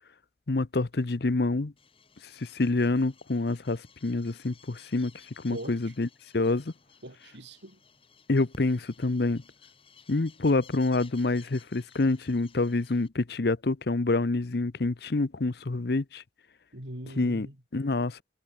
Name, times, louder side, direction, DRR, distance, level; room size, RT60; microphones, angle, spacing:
voice 1, 0.5-1.7 2.4-5.1 5.4-6.1 6.3-6.7 8.3-9.4 10.1-16.2 17.2-17.5 17.7-18.2, left 2 dB, 60° left, 0.7 m, -27 dB
sound 1, 1.8-13.1, left 4 dB, 30° left, 7.9 m, -56 dB
voice 2, 5.5-5.9 7.0-7.8 16.7-17.6, right 1 dB, 70° right, 6.8 m, -41 dB
head